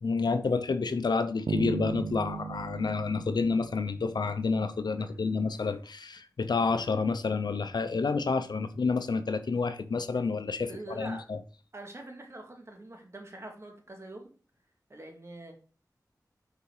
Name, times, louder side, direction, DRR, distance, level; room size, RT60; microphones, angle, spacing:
voice 1, 0.0-10.7 11.0-11.4, left 4 dB, 85° left, 0.6 m, -29 dB
sound 1, 1.5-4.5, right 5 dB, 85° right, 0.5 m, -36 dB
voice 2, 10.7-11.3 11.7-14.3 14.9-15.5, right 2 dB, 40° right, 2.1 m, -44 dB
6.8 x 4.8 x 4.7 m
wide cardioid pair, 50°, 7 cm